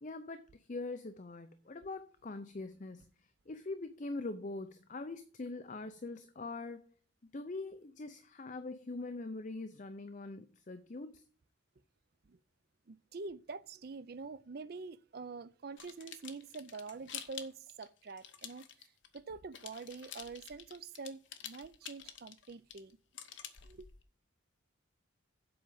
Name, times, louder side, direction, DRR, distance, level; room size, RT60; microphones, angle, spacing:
voice 1, 0.0-6.9 7.3-11.2, left 3 dB, 40° left, 0.5 m, -43 dB
voice 2, 12.9-23.0 23.6-23.9, right 4 dB, 50° right, 0.5 m, -46 dB
sound 1, 15.8-19.2 19.5-24.0, left 9 dB, 65° left, 1.0 m, -48 dB
7.8 x 5.0 x 7.3 m
head